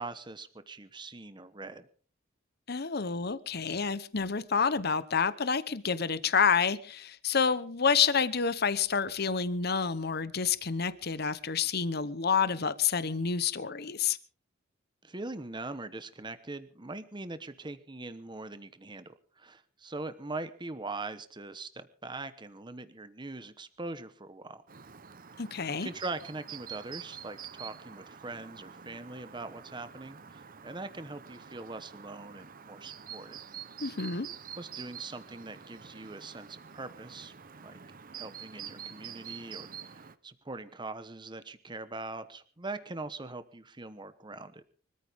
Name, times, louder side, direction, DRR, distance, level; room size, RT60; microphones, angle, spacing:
voice 1, 0.0-1.9 15.0-24.6 25.8-33.4 34.6-37.3 37.6-37.8 38.1-44.6, right 2 dB, 25° right, 11 dB, 1.1 m, -42 dB
voice 2, 2.7-14.2 25.4-25.9 33.8-34.3, left 6 dB, 55° left, 15 dB, 1.0 m, -28 dB
Chirp tweet, 24.7-40.2, right 8 dB, 45° right, 0.9 m, -47 dB
24.5 x 14.0 x 3.6 m, 0.41 s
head